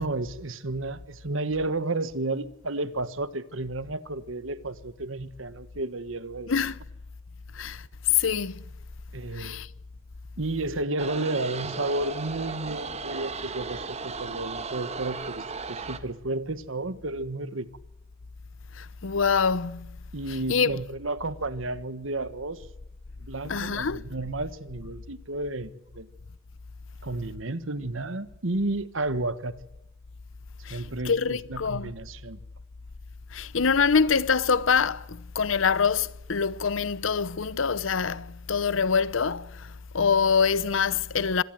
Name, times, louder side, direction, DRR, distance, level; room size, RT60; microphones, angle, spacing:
voice 1, 0.0-6.5 9.1-9.6 10.4-17.7 20.1-22.7 23.2-26.1 27.0-29.6 30.7-32.4, right 2 dB, 75° right, 1.5 m, -32 dB
voice 2, 6.5-6.8 7.5-8.6 9.3-9.7 18.7-20.0 20.5-20.8 23.4-24.0 30.6-31.9 33.3-41.4, left 6 dB, 70° left, 0.8 m, -25 dB
sound 1, 11.0-16.0, right 4 dB, 35° right, 1.6 m, -36 dB
26.0 x 18.0 x 7.9 m
head